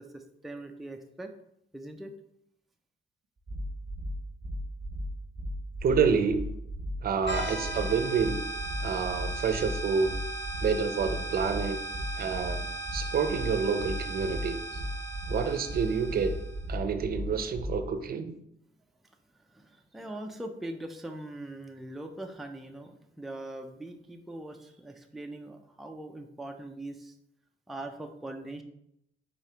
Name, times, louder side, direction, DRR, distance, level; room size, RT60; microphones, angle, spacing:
voice 1, 0.0-1.3 1.7-2.1 19.5-27.2 27.7-28.6, right 1 dB, ahead, 4 dB, 0.4 m, -41 dB
sound 1, 3.5-17.9, equal, 25° right, 0.8 m, -36 dB
voice 2, 5.8-6.5 7.0-8.4 8.8-10.1 10.6-11.8 12.2-14.6 15.3-16.3 16.7-18.3, right 5 dB, 50° right, 9 dB, 0.6 m, -28 dB
sound 2, 7.3-16.7, right 2 dB, 60° left, 1.7 m, -38 dB
4.6 x 4.1 x 2.8 m, 0.78 s
cardioid pair, 90°, 20 cm